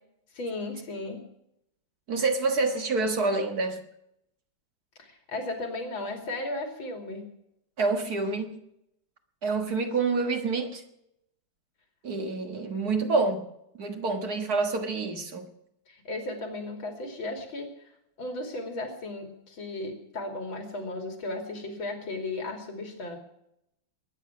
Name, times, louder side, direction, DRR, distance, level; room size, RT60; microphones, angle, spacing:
voice 1, 0.3-1.3 5.0-7.3 15.9-17.7 18.2-23.2, left 2 dB, 85° left, 3.6 m, -35 dB
voice 2, 2.1-3.8 7.8-8.6 9.4-10.8 12.0-13.5 13.7-15.5, right 3 dB, 50° right, 2.0 m, -27 dB
21.0 x 9.8 x 6.0 m
omnidirectional pair, 2.1 m